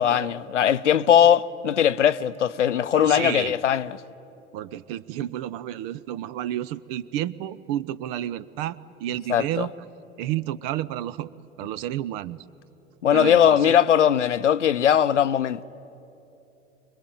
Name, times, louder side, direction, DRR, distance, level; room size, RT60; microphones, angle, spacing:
voice 1, 0.0-4.0 9.3-9.7 13.0-15.6, left 9 dB, 85° left, 0.7 m, -20 dB
voice 2, 2.9-3.5 4.5-9.7 10.2-11.3 11.6-12.4 13.1-13.8, right 12 dB, 55° right, 0.8 m, -31 dB
25.0 x 21.5 x 9.3 m
figure-of-eight pair, 80°, 35 cm